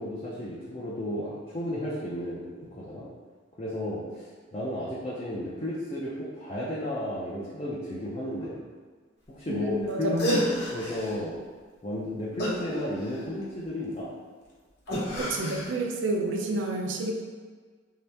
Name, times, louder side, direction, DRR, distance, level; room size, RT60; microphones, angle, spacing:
voice 1, 0.0-3.1 3.6-8.6 9.3-11.4 11.8-14.1, left 1 dB, 30° left, -6 dB, 0.5 m, -33 dB
voice 2, 9.5-10.4 15.2-17.1, right 2 dB, 75° right, 1 dB, 0.5 m, -29 dB
sound 1, 9.9-10.0 10.2-11.2 12.4-13.4 14.9-15.7, equal, 60° left, 1.0 m, -30 dB
3.5 x 2.8 x 3.3 m, 1.5 s
head